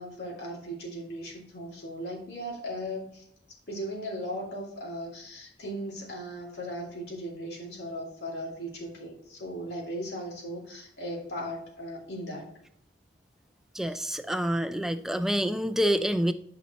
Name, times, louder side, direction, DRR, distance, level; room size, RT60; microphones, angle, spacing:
voice 1, 0.0-3.3 3.7-12.5 13.8-14.0, equal, 65° left, -3 dB, 2.7 m, -37 dB
voice 2, 13.7-16.3, equal, 5° right, 8 dB, 0.4 m, -27 dB
11.5 x 5.6 x 3.0 m, 0.68 s
head